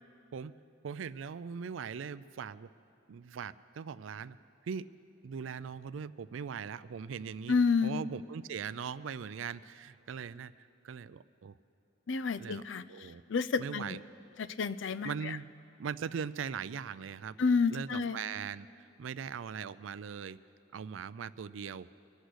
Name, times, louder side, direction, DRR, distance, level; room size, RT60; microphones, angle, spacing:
voice 1, 0.8-2.7 3.1-4.4 4.6-4.9 5.2-7.5 7.8-11.6 12.4-12.6 12.9-13.2 13.6-14.0 15.0-15.5 15.8-17.4 17.7-20.4 20.7-21.9, right 6 dB, 90° right, 16 dB, 0.4 m, -40 dB
voice 2, 7.5-8.0 12.1-12.8 13.3-14.0 14.4-15.1 17.4-18.2, left 5 dB, 70° left, 14 dB, 0.5 m, -29 dB
24.5 x 8.2 x 6.4 m, 2.7 s
head